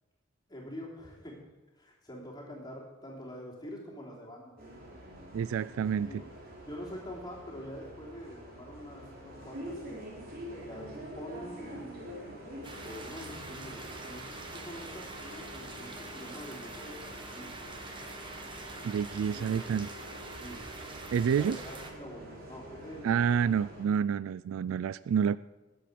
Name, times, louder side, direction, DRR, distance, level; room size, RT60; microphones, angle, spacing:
voice 1, 0.5-1.4 1.8-4.5 6.0-6.2 6.7-9.8 10.6-12.1 12.6-17.6 19.3-19.7 20.4-20.6 21.1-23.5, equal, 20° left, 3.3 m, -45 dB
Bus, 4.6-23.9, equal, 45° right, 3.3 m, -46 dB
voice 2, 5.3-6.1 18.8-19.9 21.1-21.6 23.0-25.4, right 7 dB, 90° right, 0.3 m, -28 dB
sound 1, 12.6-21.9, right 2 dB, 25° right, 1.5 m, -45 dB
20.0 x 7.9 x 5.2 m
head